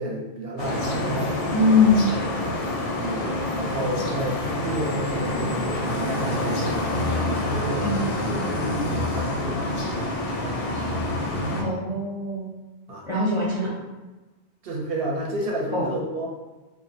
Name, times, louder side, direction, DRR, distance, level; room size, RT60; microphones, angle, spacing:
voice 1, 0.0-1.4 2.9-6.7 7.2-11.1 12.9-13.1 13.6-13.7 14.6-16.3, right 1 dB, 65° right, -2 dB, 0.7 m, -32 dB
sound 1, 0.6-11.6, left 1 dB, 80° left, 0.9 m, -27 dB
voice 2, 1.5-2.2 7.8-8.5 11.5-12.5 13.1-13.7 15.7-15.9, left 3 dB, 40° left, -9 dB, 0.4 m, -22 dB
2.4 x 2.0 x 2.6 m, 1.2 s
omnidirectional pair, 1.1 m